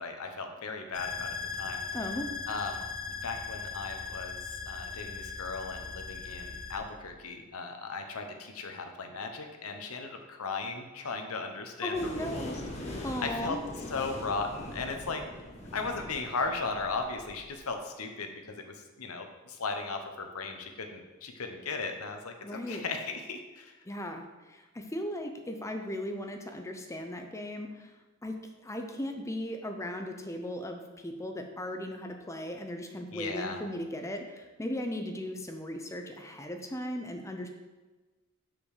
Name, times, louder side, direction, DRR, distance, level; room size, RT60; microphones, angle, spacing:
voice 1, 0.0-1.8 2.5-2.8 3.1-4.4 4.7-13.6 13.9-15.2 15.7-23.7 33.1-33.6, left 4 dB, 90° left, 4 dB, 0.9 m, -37 dB
sound 1, 0.9-6.8, left 5 dB, 70° left, 1.2 m, -39 dB
voice 2, 1.9-2.3 11.8-12.6 13.0-13.6 22.4-22.8 23.9-27.9 28.2-28.4 28.6-37.5, left 1 dB, 15° left, 5 dB, 0.6 m, -37 dB
sound 2, 11.9-17.6, left 1 dB, 30° left, 1.3 m, -42 dB
6.8 x 5.8 x 4.9 m, 1.2 s
head